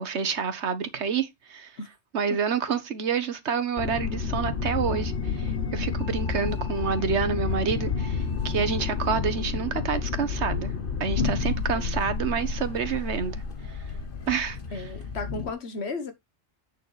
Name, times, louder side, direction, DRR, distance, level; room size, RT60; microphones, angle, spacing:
voice 1, 0.0-1.7 2.1-10.7 11.0-13.4 13.7-13.8 14.3-14.8, right 6 dB, 75° right, 1.4 m, -28 dB
sound 1, 3.8-15.5, left 5 dB, 50° left, 1.2 m, -30 dB
voice 2, 11.7-12.1 14.7-16.1, left 3 dB, 65° left, 1.5 m, -35 dB
8.3 x 6.8 x 3.3 m
omnidirectional pair, 1.2 m